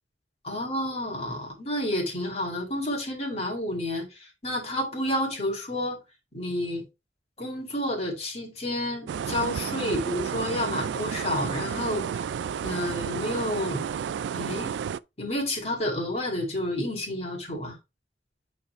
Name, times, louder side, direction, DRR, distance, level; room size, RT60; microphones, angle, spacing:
voice 1, 0.4-6.0 6.3-6.8 7.4-12.3 12.6-13.8 14.3-14.7 15.2-17.8, left 1 dB, 35° left, 2.5 m, -30 dB
sound 1, 9.1-15.0, right 7 dB, 90° right, 0.3 m, -31 dB
8.3 x 4.3 x 3.2 m
head